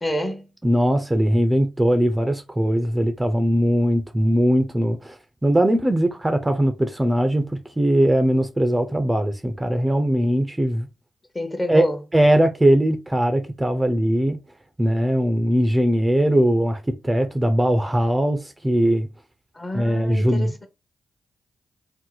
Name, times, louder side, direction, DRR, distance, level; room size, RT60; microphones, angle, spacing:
voice 1, 0.0-0.5 11.3-12.0 19.5-20.7, left 1 dB, 25° left, 1.0 m, -28 dB
voice 2, 0.6-5.2 5.4-10.9 11.7-11.8 12.1-14.4 14.8-19.1 19.7-20.5, right 1 dB, 15° right, 0.6 m, -20 dB
2.8 x 2.1 x 3.9 m
supercardioid pair, 45°, 0 cm